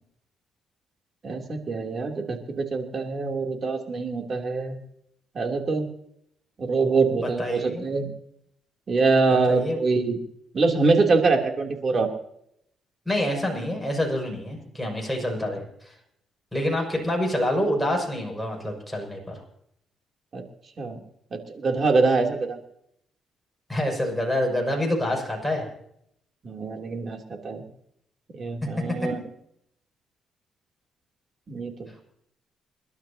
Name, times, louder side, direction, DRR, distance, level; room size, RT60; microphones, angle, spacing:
voice 1, 1.2-4.8 5.3-5.9 6.6-8.1 8.9-10.2 10.5-12.1 20.3-20.4 20.8-21.0 21.3-22.6 26.4-27.6 28.3-29.2 31.5-31.9, right 3 dB, 45° right, 2 dB, 3.1 m, -24 dB
voice 2, 7.2-7.8 9.5-9.8 13.0-15.9 16.5-19.4 23.7-25.7, left 1 dB, 5° left, 0 dB, 6.4 m, -27 dB
29.0 x 12.0 x 2.9 m, 0.73 s
cardioid pair, 90°, 0 cm